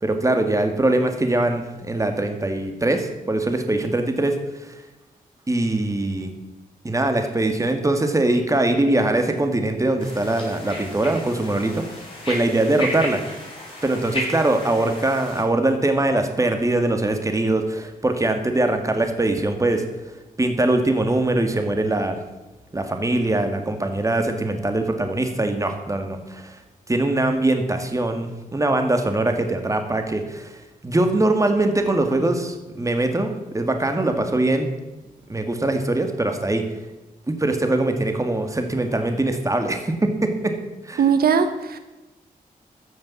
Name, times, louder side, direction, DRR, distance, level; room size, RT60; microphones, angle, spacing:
voice 1, 0.0-4.4 4.6-4.7 5.5-6.3 6.8-12.0 12.3-13.2 13.8-19.8 20.4-22.2 22.7-26.6 26.9-30.5 30.8-34.7 35.3-36.7 37.3-40.5 40.8-41.0, right 2 dB, 20° right, 6 dB, 2.0 m, -22 dB
sound 1, 10.0-15.4, left 1 dB, 35° left, 5.5 m, -34 dB
voice 2, 41.0-41.8, right 6 dB, 85° right, 9 dB, 0.9 m, -19 dB
14.0 x 7.3 x 7.2 m, 1.1 s
cardioid pair, 90°, 15 cm